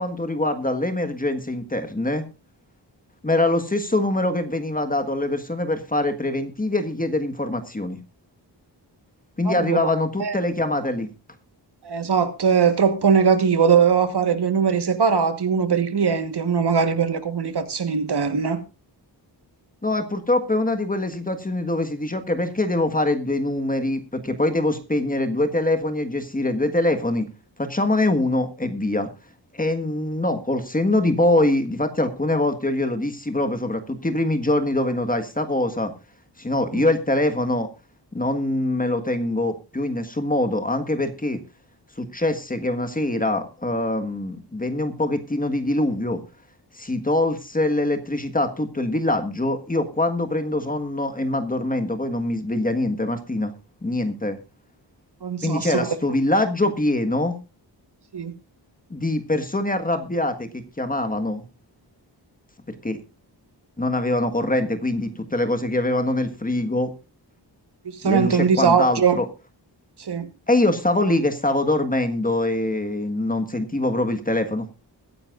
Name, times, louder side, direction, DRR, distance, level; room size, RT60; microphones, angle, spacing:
voice 1, 0.0-2.2 3.2-8.0 9.4-11.1 19.8-27.3 27.6-29.1 29.5-35.9 36.4-37.7 38.1-41.4 42.0-46.2 46.7-53.5 53.8-54.4 55.4-57.3 58.9-61.4 62.8-63.0 63.8-66.9 68.0-69.3 70.5-74.7, left 1 dB, 20° left, 1.5 m, -23 dB
voice 2, 9.4-9.8 10.2-10.4 11.8-18.6 36.7-36.8 55.2-55.9 58.1-58.3 67.8-69.2 70.0-70.3, right 6 dB, 65° right, 1.5 m, -20 dB
21.5 x 10.0 x 2.5 m
wide cardioid pair, 120°, 43 cm